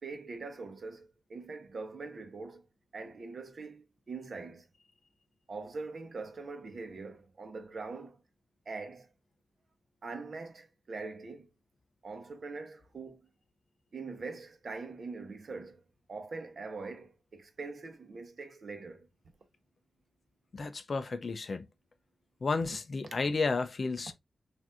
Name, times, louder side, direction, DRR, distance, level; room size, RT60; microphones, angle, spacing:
voice 1, 0.0-2.6 2.9-4.7 5.5-8.2 8.7-9.1 10.0-11.5 12.0-13.2 13.9-15.8 16.1-19.1, right 3 dB, 50° right, 0.9 m, -43 dB
voice 2, 20.5-21.6 22.4-24.1, left 4 dB, 45° left, 0.4 m, -32 dB
5.9 x 2.6 x 2.5 m
wide cardioid pair, 180°, 0 cm